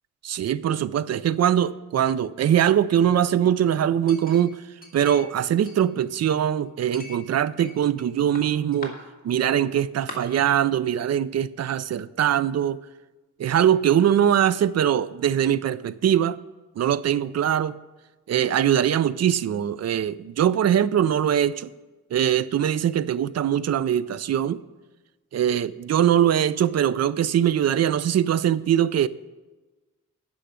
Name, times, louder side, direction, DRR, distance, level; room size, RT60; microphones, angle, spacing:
voice 1, 0.2-4.6 4.9-9.0 9.2-12.8 13.4-16.4 16.8-17.8 18.3-21.7 22.1-24.6 25.3-29.1, right 10 dB, 55° right, 17 dB, 0.4 m, -22 dB
Chink clink, 4.1-5.4 5.7-6.4 6.9-8.1 8.4-8.9 9.6-9.7 10.1-10.2, left 3 dB, 30° left, 1.8 m, -41 dB
10.0 x 6.3 x 8.0 m, 1.2 s
wide cardioid pair, 140°, 32 cm